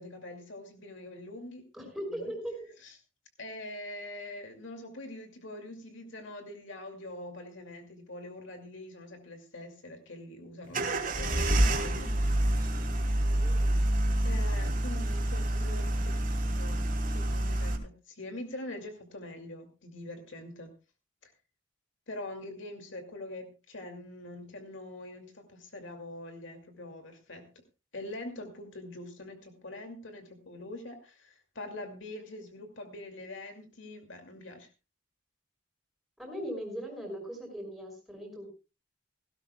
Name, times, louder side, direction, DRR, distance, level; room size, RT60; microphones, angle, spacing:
voice 1, 0.0-1.7 2.1-2.3 2.8-2.9 3.4-12.7 14.2-16.9 17.1-20.7 21.2-21.3 22.1-27.5 27.9-34.7, left 1 dB, 70° left, 5 dB, 2.5 m, -44 dB
voice 2, 1.7-2.6 13.4-13.9 36.2-38.5, equal, ahead, 1 dB, 5.8 m, -39 dB
sound 1, 10.7-17.8, right 1 dB, 45° right, 2.9 m, -28 dB
18.0 x 16.0 x 2.3 m, 0.30 s
head